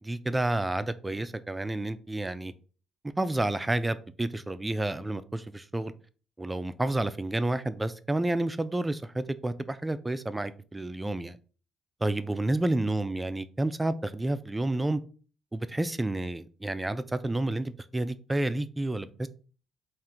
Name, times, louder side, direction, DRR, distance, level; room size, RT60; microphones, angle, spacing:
voice 1, 0.0-2.5 3.2-5.9 6.4-11.4 12.0-15.0 15.5-19.3, right 2 dB, 15° right, 0.4 m, -30 dB
3.6 x 2.5 x 4.3 m
cardioid pair, 90°, 0 cm